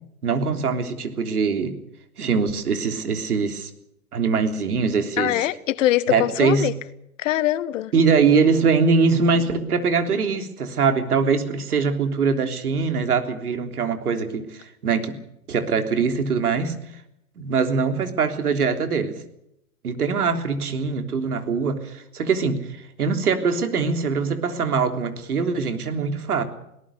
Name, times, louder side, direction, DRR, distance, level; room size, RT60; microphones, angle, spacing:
voice 1, 0.2-1.7 2.2-3.7 4.1-5.3 6.1-6.7 7.9-15.2 15.5-16.7 17.4-19.1 19.8-22.6 23.0-26.4, right 5 dB, 80° right, 3.5 m, -22 dB
voice 2, 5.2-6.7 7.2-7.9, left 14 dB, 55° left, 1.3 m, -22 dB
22.5 x 18.5 x 6.8 m
hypercardioid pair, 115°, 44 cm